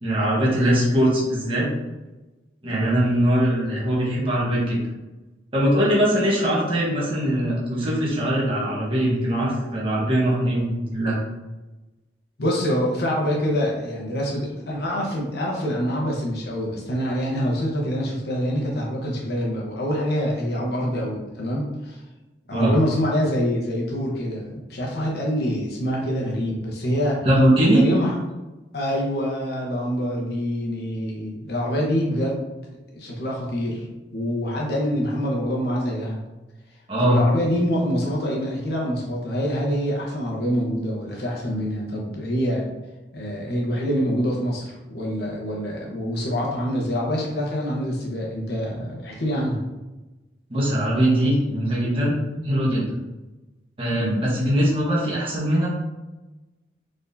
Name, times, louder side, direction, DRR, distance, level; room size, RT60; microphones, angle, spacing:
voice 1, 0.0-1.7 2.6-4.8 5.5-11.2 22.5-22.7 27.2-27.8 36.9-37.2 50.5-52.2 52.4-53.0 53.8-55.7, right 1 dB, 30° right, -6 dB, 1.2 m, -21 dB
voice 2, 2.7-3.0 12.4-22.0 22.5-27.2 27.7-28.2 28.7-32.4 32.9-36.2 37.0-42.6 43.1-49.6 53.9-54.1, equal, 60° left, -3 dB, 1.0 m, -25 dB
4.4 x 3.7 x 2.7 m, 1.1 s
head